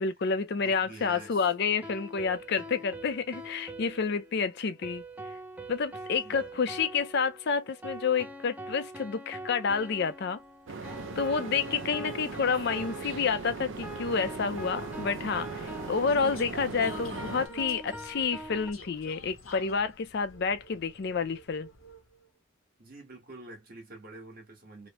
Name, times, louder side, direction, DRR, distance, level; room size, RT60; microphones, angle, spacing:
voice 1, 0.0-5.0 5.7-10.4 11.2-21.7, left 5 dB, 55° left, 0.4 m, -29 dB
voice 2, 0.6-1.5 2.5-2.9 6.1-6.8 22.8-24.9, right 2 dB, 45° right, 1.4 m, -48 dB
sound 1, 1.0-18.7, right 1 dB, 5° right, 0.4 m, -44 dB
Vehicle, 10.4-22.3, left 1 dB, 75° left, 0.9 m, -51 dB
sound 2, 10.7-17.5, right 4 dB, 65° right, 0.6 m, -39 dB
3.1 x 2.1 x 2.9 m
head